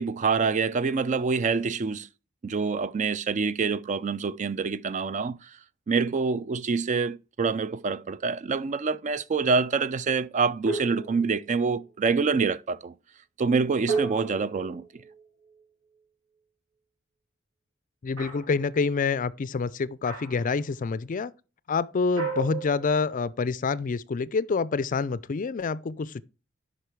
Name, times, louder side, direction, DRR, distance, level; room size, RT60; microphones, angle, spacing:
voice 1, 0.0-2.1 2.4-5.5 5.9-12.9 13.4-14.9, right 4 dB, 35° right, 0.4 m, -26 dB
sound 1, 10.7-11.6 13.9-15.6 18.2-18.6 20.1-20.6 22.2-23.4, right 4 dB, 85° right, 4.2 m, -34 dB
voice 2, 18.0-21.3 21.7-26.2, left 4 dB, 40° left, 0.4 m, -27 dB
8.1 x 5.7 x 4.5 m
head